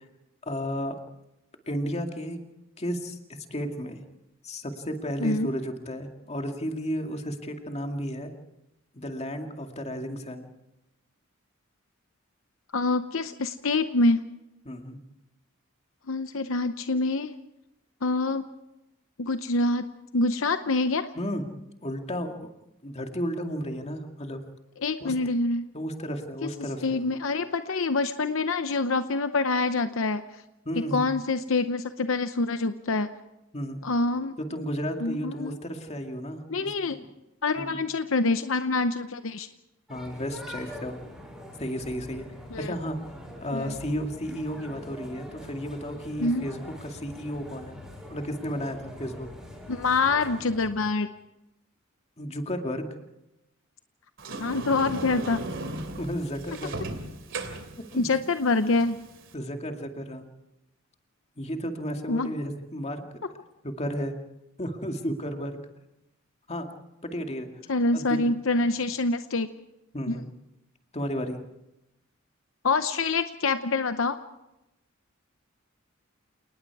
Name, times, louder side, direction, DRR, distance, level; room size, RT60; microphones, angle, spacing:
voice 1, 0.4-1.0 1.7-2.4 2.8-3.2 3.5-4.0 4.4-8.3 8.9-10.5 14.7-15.0 21.2-21.4 21.8-22.5 22.8-24.4 25.0-25.1 25.7-27.1 30.7-31.0 33.5-33.8 34.4-37.1 37.6-37.8 39.9-41.0 41.6-42.3 42.6-43.0 43.4-47.8 48.1-49.3 52.2-52.9 56.0-56.8 57.8-58.1 59.3-60.3 61.4-63.0 63.6-64.2 64.6-65.6 66.5-66.7 67.0-67.5 67.9-68.3 69.9-70.3 70.9-71.4, equal, 35° left, 4 dB, 2.2 m, -33 dB
voice 2, 12.7-14.3 16.1-17.3 18.0-18.4 19.2-19.9 20.1-21.1 24.8-25.7 26.4-26.5 26.8-30.2 30.9-33.1 33.8-34.3 35.0-35.6 36.5-37.0 37.4-39.5 42.5-42.7 43.5-43.8 46.2-46.4 49.7-51.1 54.4-55.4 58.0-59.0 62.1-62.3 67.7-69.5 70.1-70.2 72.6-74.2, left 3 dB, 70° left, 10 dB, 0.8 m, -26 dB
sound 1, 39.9-50.7, left 1 dB, ahead, 7.1 m, -44 dB
Sliding door, 54.2-59.3, right 2 dB, 65° right, 2.8 m, -37 dB
29.0 x 19.5 x 4.8 m, 0.92 s
head